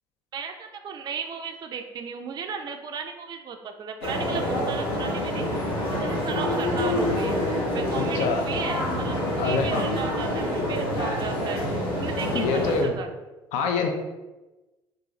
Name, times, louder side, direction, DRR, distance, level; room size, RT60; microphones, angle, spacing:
voice 1, 0.3-5.5 5.9-7.4 7.7-11.6 12.0-13.1, right 6 dB, 35° right, 5 dB, 0.3 m, -35 dB
sound 1, 4.0-12.8, left 1 dB, 85° left, 0.9 m, -27 dB
voice 2, 7.9-8.5 9.4-10.1 12.3-12.9 13.5-13.9, left 4 dB, 65° left, 4 dB, 0.5 m, -26 dB
2.5 x 2.4 x 3.0 m, 1.1 s
hypercardioid pair, 60°, 13 cm